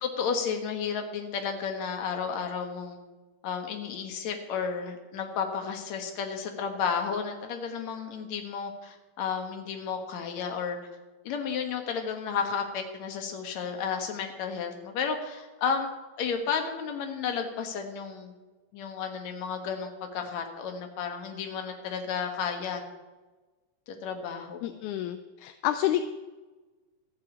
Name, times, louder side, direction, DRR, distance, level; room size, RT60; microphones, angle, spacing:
voice 1, 0.0-3.0 3.4-10.8 11.2-15.9 16.2-18.3 18.7-22.8 23.9-24.6, left 6 dB, 60° left, 5 dB, 2.6 m, -32 dB
voice 2, 24.6-26.0, left 12 dB, 80° left, 9 dB, 1.9 m, -29 dB
14.5 x 6.9 x 8.2 m, 1.2 s
omnidirectional pair, 3.8 m